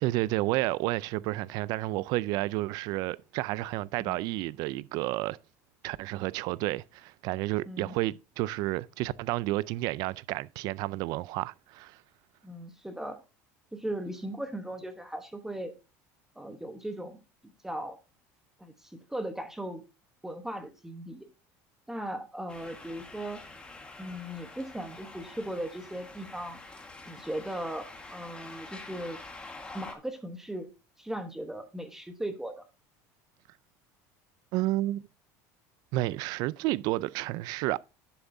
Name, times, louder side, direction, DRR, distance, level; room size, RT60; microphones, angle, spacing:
voice 1, 0.0-5.4 5.8-12.0 34.5-35.1 35.9-37.8, right 18 dB, 65° right, 0.4 m, -31 dB
voice 2, 12.4-13.2 13.7-15.7 16.4-18.0 18.6-19.8 20.2-21.3 21.9-23.5 24.0-26.6 27.0-29.2 29.7-30.7 31.0-32.6, right 1 dB, 5° right, 1.0 m, -38 dB
sound 1, 22.5-29.9, left 3 dB, 15° left, 1.6 m, -46 dB
11.0 x 7.0 x 2.7 m
cardioid pair, 130°, 8 cm